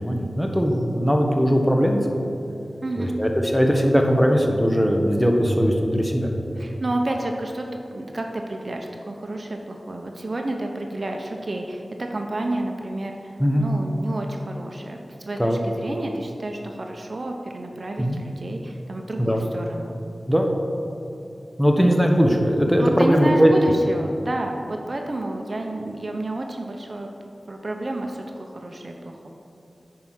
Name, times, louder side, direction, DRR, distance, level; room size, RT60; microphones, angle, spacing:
voice 1, 0.0-2.0 3.0-6.3 13.4-13.7 15.4-15.6 18.0-18.2 19.2-19.5 20.3-20.5 21.6-23.5, equal, ahead, 2 dB, 1.1 m, -19 dB
voice 2, 2.8-3.2 6.5-19.9 22.8-27.1 27.5-29.3, right 1 dB, 55° right, 2 dB, 0.7 m, -30 dB
9.5 x 4.7 x 5.7 m, 2.7 s
cardioid pair, 45°, 0 cm